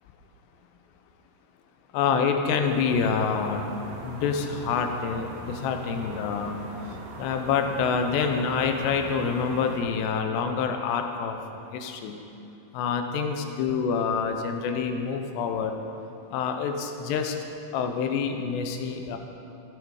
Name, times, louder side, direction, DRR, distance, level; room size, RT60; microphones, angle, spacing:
voice 1, 1.9-6.6 7.2-11.4 11.7-12.2 12.7-15.7 16.3-17.4 17.7-19.2, left 6 dB, 80° left, 5 dB, 2.7 m, -27 dB
sound 1, 2.6-9.8, right 2 dB, 80° right, 3.5 m, -40 dB
14.5 x 9.1 x 4.7 m, 2.8 s
omnidirectional pair, 5.1 m